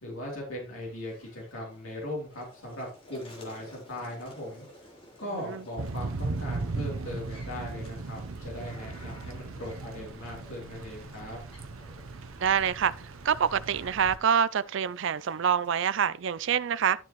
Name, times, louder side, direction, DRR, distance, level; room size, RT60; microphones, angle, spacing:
voice 1, 0.0-4.6 5.2-11.4, left 1 dB, 80° left, 3.2 m, -39 dB
sound 1, 0.8-16.1, left 1 dB, 25° left, 3.2 m, -54 dB
Thunder / Rain, 5.8-14.2, right 3 dB, 85° right, 0.8 m, -37 dB
voice 2, 12.4-12.9 13.2-17.0, right 8 dB, 60° right, 0.4 m, -26 dB
11.5 x 6.7 x 3.0 m
head